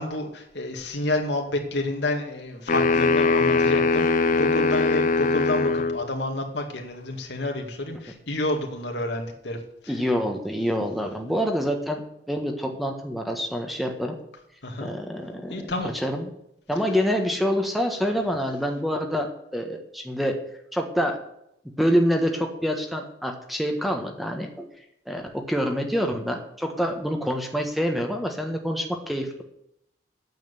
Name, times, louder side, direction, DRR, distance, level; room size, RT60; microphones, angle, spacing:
voice 1, 0.0-9.6 9.8-9.9 14.6-14.9 15.5-15.9, left 1 dB, 75° left, 3 dB, 2.3 m, -29 dB
sound 1, 2.7-6.0, left 3 dB, 45° left, 0.6 m, -21 dB
voice 2, 9.9-14.1 14.8-16.3 16.7-20.4 20.7-21.2 21.8-24.7 25.1-29.4, equal, ahead, 3 dB, 1.4 m, -26 dB
9.2 x 7.7 x 9.4 m, 0.78 s
head